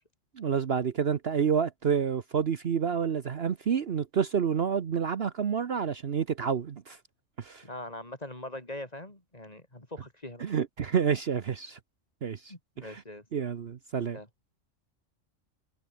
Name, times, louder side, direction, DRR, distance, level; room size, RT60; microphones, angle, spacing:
voice 1, 0.4-7.0 7.4-7.6 10.4-11.8 12.2-12.4 12.8-12.9 13.3-14.2, right 7 dB, 55° right, 1.1 m, -28 dB
voice 2, 7.6-10.4 12.5-13.2 14.1-14.3, left 1 dB, 30° left, 3.9 m, -42 dB
omnidirectional pair, 1.3 m